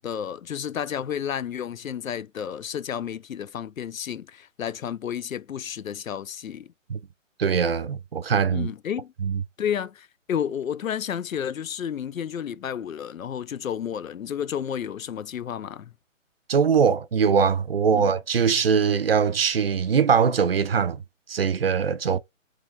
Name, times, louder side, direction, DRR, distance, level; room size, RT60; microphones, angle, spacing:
voice 1, 0.0-6.7 8.5-9.1 9.6-15.9 17.9-18.2 22.1-22.2, left 9 dB, 90° left, 0.5 m, -31 dB
voice 2, 7.4-8.7 9.2-9.4 16.5-21.0 21.3-22.2, right 6 dB, 50° right, 0.5 m, -22 dB
3.8 x 3.1 x 3.2 m
figure-of-eight pair, 150°, 39 cm